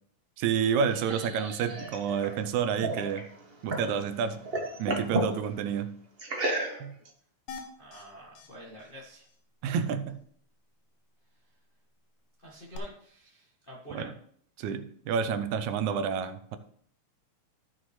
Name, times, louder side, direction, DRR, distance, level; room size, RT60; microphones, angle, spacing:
voice 1, 0.4-3.3 3.6-4.4 4.8-5.9 6.8-6.9 9.6-10.2 13.9-14.1 14.6-16.6, right 7 dB, 80° right, 10 dB, 2.1 m, -29 dB
sound 1, 0.6-4.0 4.3-5.3 6.2-7.1, right 2 dB, 60° right, 0.6 m, -33 dB
sound 2, 7.5-8.0 8.4-8.5 8.8-8.9 9.2-9.4 12.7-12.8, left 5 dB, 85° left, 2.4 m, -43 dB
voice 2, 7.8-9.3 12.4-14.1, right 1 dB, 30° left, -4 dB, 0.9 m, -47 dB
14.0 x 6.2 x 3.2 m, 0.63 s
omnidirectional pair, 3.3 m